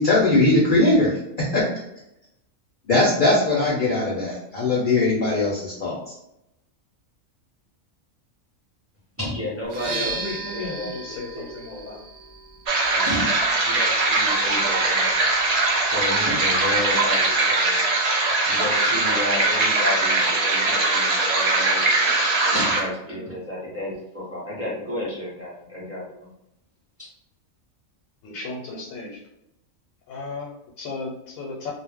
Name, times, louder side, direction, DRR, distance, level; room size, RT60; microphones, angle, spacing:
voice 1, 0.0-1.7 2.9-6.1, left 2 dB, 55° left, -4 dB, 0.6 m, -20 dB
voice 2, 9.2-10.2 10.5-11.9 12.9-13.3 13.6-15.2 15.8-17.8 18.2-22.0 22.5-26.3 27.0-27.1, left 1 dB, 15° right, -6 dB, 0.5 m, -32 dB
sound 1, 9.6-17.4, right 3 dB, 65° right, 0.8 m, -38 dB
voice 3, 9.9-12.0 28.2-29.2 30.1-31.7, left 3 dB, 80° left, -2 dB, 1.0 m, -35 dB
sound 2, 12.7-22.8, right 2 dB, 85° right, 0.3 m, -21 dB
2.4 x 2.0 x 3.4 m, 0.83 s
omnidirectional pair, 1.4 m